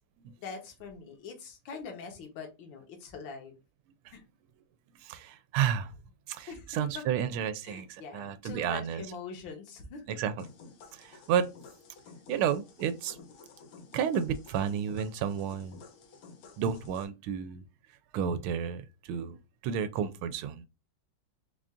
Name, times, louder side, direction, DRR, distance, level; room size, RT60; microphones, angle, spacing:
voice 1, 0.4-3.5 4.1-4.2 6.5-7.0 7.6-10.2, left 5 dB, 65° left, 1.7 m, -43 dB
voice 2, 5.0-5.9 6.3-9.0 10.1-10.4 10.9-11.5 12.3-13.2 13.9-15.8 16.6-17.6 18.1-19.4 19.6-20.7, right 8 dB, 85° right, 1.4 m, -31 dB
sound 1, 10.4-17.0, left 4 dB, 90° left, 1.7 m, -52 dB
4.2 x 2.5 x 3.5 m
omnidirectional pair, 2.3 m